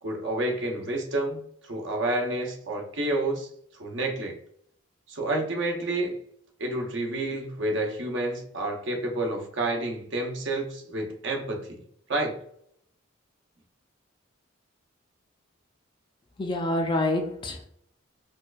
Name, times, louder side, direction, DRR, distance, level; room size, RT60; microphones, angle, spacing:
voice 1, 0.0-1.4 1.7-3.5 3.8-4.3 5.1-6.2 6.6-11.8 12.1-12.3, right 2 dB, 60° right, 2 dB, 0.6 m, -29 dB
voice 2, 16.4-17.7, left 2 dB, 25° left, 3 dB, 0.4 m, -27 dB
4.3 x 2.4 x 2.3 m, 0.66 s
head